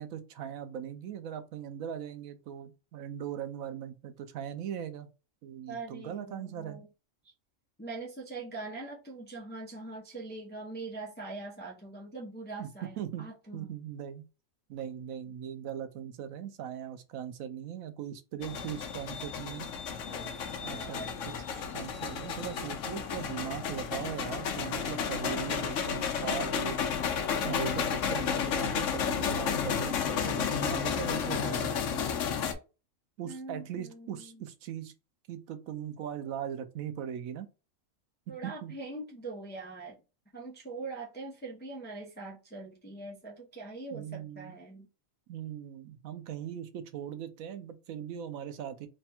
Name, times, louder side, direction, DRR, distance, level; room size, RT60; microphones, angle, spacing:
voice 1, 0.0-5.1 5.4-6.8 12.6-14.2 14.7-19.7 20.6-21.0 21.7-26.8 27.4-32.1 33.2-34.9 35.3-37.5 38.3-38.7 43.9-44.5 45.3-48.9, right 9 dB, 90° right, 1.1 m, -39 dB
voice 2, 5.7-6.9 7.8-13.7 20.1-21.2 33.3-34.4 38.3-40.0 40.3-44.9, right 3 dB, 10° left, 0.5 m, -42 dB
sound 1, 18.4-32.5, left 7 dB, 70° left, 1.0 m, -32 dB
3.3 x 2.2 x 4.2 m
omnidirectional pair, 1.4 m